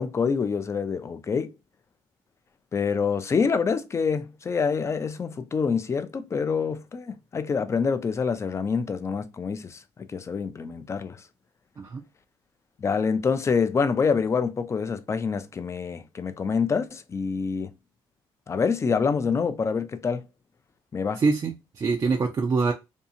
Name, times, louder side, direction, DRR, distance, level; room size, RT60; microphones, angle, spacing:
voice 1, 0.0-1.5 2.7-11.2 12.8-17.7 18.5-20.2 20.9-21.2, left 5 dB, 30° left, 0.4 m, -26 dB
voice 2, 21.2-22.7, right 4 dB, 35° right, 0.5 m, -24 dB
2.7 x 2.4 x 2.7 m
cardioid pair, 85°, 10 cm